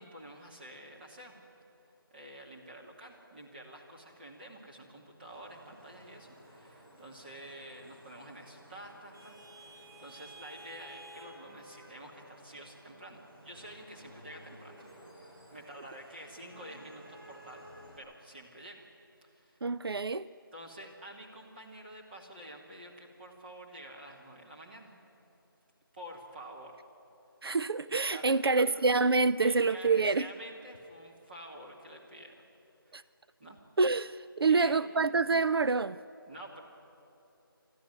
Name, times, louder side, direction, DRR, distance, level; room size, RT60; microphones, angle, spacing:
voice 1, 0.0-1.4 2.1-14.8 15.1-18.8 19.2-19.6 20.5-24.9 25.9-26.8 28.1-28.7 29.4-32.4 32.9-33.1 33.4-33.6 34.5-35.1 36.3-36.6, right 1 dB, 25° right, 2.5 m, -49 dB
Vehicle horn car horn honking / Traffic noise roadway noise, 5.2-18.0, right 1 dB, 65° right, 5.9 m, -53 dB
voice 2, 19.6-20.3 27.4-30.3 32.9-33.0 33.8-36.0, right 4 dB, 90° right, 0.5 m, -27 dB
26.0 x 13.5 x 9.5 m
figure-of-eight pair, 170°, 12 cm